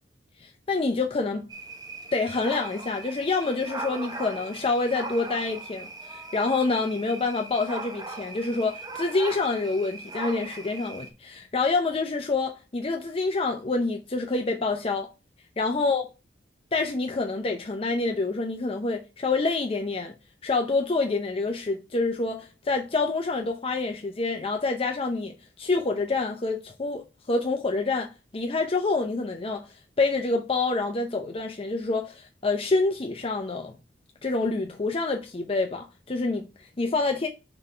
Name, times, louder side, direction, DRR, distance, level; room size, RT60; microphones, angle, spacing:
voice 1, 0.4-1.4 2.1-15.1 15.6-16.1 16.7-20.1 20.4-33.7 34.2-37.3, left 3 dB, 30° left, 0.5 m, -27 dB
sound 1, 1.5-11.1, right 2 dB, 20° right, 0.8 m, -39 dB
4.9 x 4.0 x 5.4 m
head